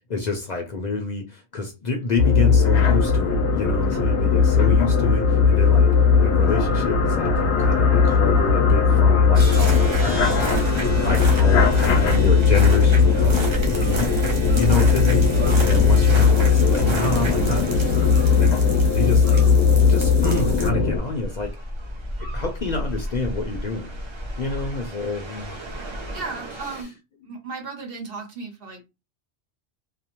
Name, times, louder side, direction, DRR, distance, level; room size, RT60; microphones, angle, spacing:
voice 1, 0.1-14.1 14.5-15.3 15.5-18.1 18.4-19.4 19.9-21.6 22.2-24.0 24.4-25.5, left 3 dB, 50° left, 0.6 m, -28 dB
sound 1, 2.2-21.0, left 5 dB, 85° left, 0.9 m, -18 dB
sound 2, 9.4-26.8, right 1 dB, 40° right, 0.4 m, -30 dB
voice 2, 26.1-27.0 27.2-28.9, right 4 dB, 60° right, 1.0 m, -35 dB
2.6 x 2.0 x 2.9 m
omnidirectional pair, 1.1 m